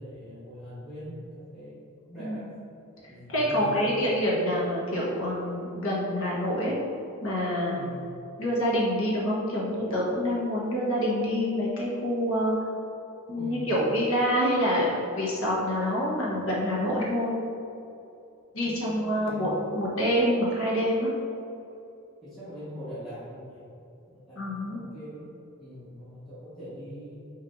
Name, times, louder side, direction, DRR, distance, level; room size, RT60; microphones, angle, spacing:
voice 1, 0.0-1.7 2.1-2.5 3.1-4.1 7.7-8.0 13.4-13.8 18.6-19.7 22.2-23.6 24.1-25.3 25.6-27.3, equal, ahead, -15 dB, 1.3 m, -42 dB
voice 2, 3.3-6.8 7.2-7.8 8.4-12.6 13.3-17.3 18.5-19.5 19.7-21.1 24.4-24.8, equal, 75° left, -5 dB, 1.1 m, -26 dB
5.6 x 3.3 x 2.6 m, 2.7 s
head